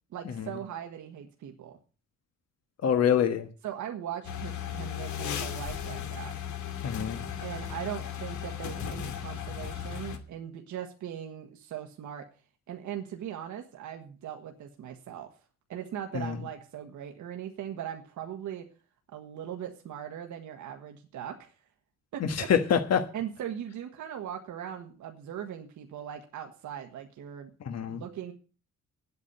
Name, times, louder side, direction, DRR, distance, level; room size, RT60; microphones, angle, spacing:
voice 1, 0.1-1.8 3.6-6.4 7.4-12.3 12.7-15.4 15.7-18.7 19.1-21.5 22.1-22.5 23.1-27.5 27.9-28.3, right 10 dB, 75° right, 4 dB, 1.6 m, -39 dB
voice 2, 2.8-3.5 6.8-7.2 22.3-23.0 27.6-28.0, left 8 dB, 55° left, 7 dB, 1.5 m, -25 dB
sound 1, 4.2-10.2, left 8 dB, 75° left, 2.5 m, -36 dB
9.6 x 8.5 x 8.1 m, 0.37 s
cardioid pair, 90°, 30 cm